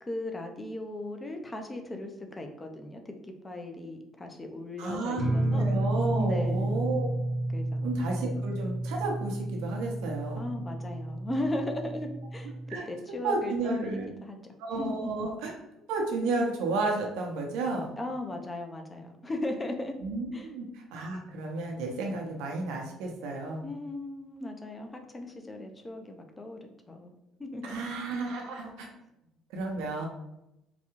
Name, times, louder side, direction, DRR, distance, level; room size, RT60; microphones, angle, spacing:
voice 1, 0.0-3.1 3.4-5.7 6.1-6.8 7.5-7.9 10.4-12.5 12.9-14.4 14.8-15.1 18.0-20.0 20.3-20.5 23.6-27.1 27.4-27.8, left 1 dB, 15° left, 4 dB, 0.5 m, -37 dB
voice 2, 4.8-5.2 5.5-7.1 7.8-10.5 12.7-14.1 14.6-15.5 15.9-17.9 20.0-23.6 27.6-28.9 29.5-30.1, right 3 dB, 90° right, 1 dB, 0.7 m, -32 dB
sound 1, 5.2-12.8, right 1 dB, 40° right, 0.6 m, -31 dB
3.9 x 2.3 x 3.0 m, 0.87 s
cardioid pair, 120°, 0 cm